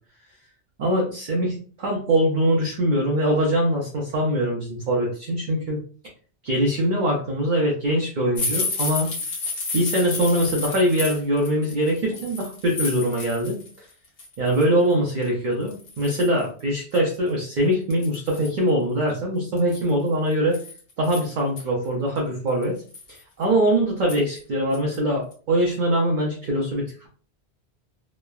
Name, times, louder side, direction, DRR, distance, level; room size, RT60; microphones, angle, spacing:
voice 1, 0.8-5.8 6.4-9.1 9.7-13.9 14.4-20.6 21.0-22.8 23.4-27.1, right 1 dB, 55° right, -1 dB, 0.6 m, -23 dB
sound 1, 8.3-13.7 14.0-14.6 15.2-15.3 15.7-16.4 16.9-17.0 17.3-17.4 17.9-18.6 19.6-21.6 22.2-22.3 22.6-23.2 24.1-24.4 24.7-25.0 25.3-25.4, left 3 dB, 65° left, 1.0 m, -31 dB
3.0 x 2.1 x 2.3 m, 0.42 s
omnidirectional pair, 1.1 m